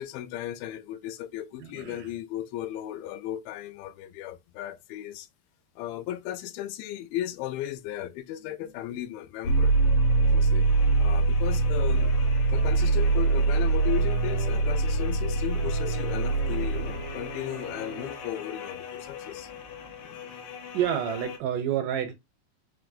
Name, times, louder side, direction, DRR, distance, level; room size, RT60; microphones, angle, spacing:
voice 1, 0.0-5.3 5.8-9.8 10.2-10.7 11.0-12.1 12.5-19.5, left 12 dB, 85° left, 2.4 m, -36 dB
voice 2, 1.6-2.2 8.6-8.7 20.1-20.4 20.7-22.1, right 10 dB, 80° right, 2.0 m, -30 dB
sound 1, 9.4-21.4, right 3 dB, 65° left, 2.0 m, -25 dB
sound 2, 11.9-18.4, right 1 dB, 40° right, 0.6 m, -41 dB
5.3 x 3.1 x 2.5 m
omnidirectional pair, 4.1 m